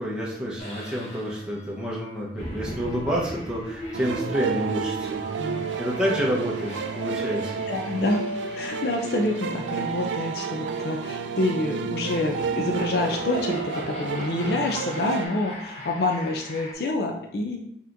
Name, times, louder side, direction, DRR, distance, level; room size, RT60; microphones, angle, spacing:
voice 1, 0.0-5.2 5.8-7.6, equal, 5° right, -5 dB, 0.9 m, -29 dB
sound 1, 0.6-16.7, equal, 35° left, 1.0 m, -39 dB
sound 2, 3.9-15.3, right 6 dB, 80° right, 0.3 m, -31 dB
voice 2, 7.7-8.3 8.5-17.6, left 2 dB, 60° left, 2 dB, 0.4 m, -27 dB
5.5 x 2.9 x 2.6 m, 0.70 s
head